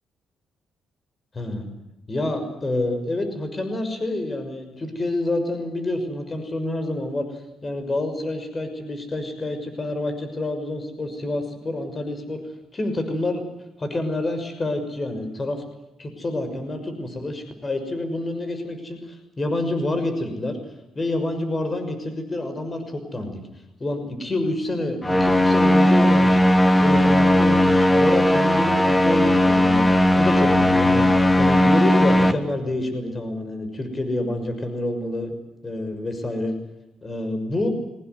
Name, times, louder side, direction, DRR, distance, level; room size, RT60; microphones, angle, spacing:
voice 1, 1.3-1.6 2.1-12.4 12.7-13.4 13.8-15.6 16.0-20.6 20.9-23.4 23.8-26.4 26.8-29.9 30.2-35.4 35.6-36.5 37.0-37.7, left 1 dB, 30° left, 8 dB, 6.3 m, -28 dB
sound 1, 25.0-32.3, left 1 dB, 10° left, 2.2 m, -17 dB
23.5 x 19.5 x 9.6 m, 0.92 s
cardioid pair, 90°, 0 cm